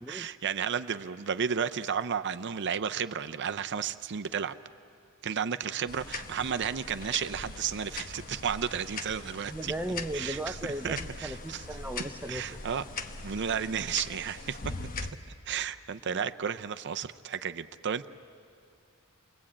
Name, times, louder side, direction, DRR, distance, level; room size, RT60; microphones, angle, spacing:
voice 1, 0.1-4.6 5.2-9.7 10.1-10.6 10.8-11.6 12.3-12.8 13.2-14.8 15.5-18.0, right 7 dB, 50° right, 10 dB, 0.6 m, -33 dB
sound 1, 5.9-15.1, left 3 dB, 40° left, 1.1 m, -41 dB
voice 2, 9.5-11.0 11.2-12.5, right 1 dB, 10° right, 6 dB, 0.5 m, -36 dB
29.5 x 21.5 x 8.7 m, 2.4 s
head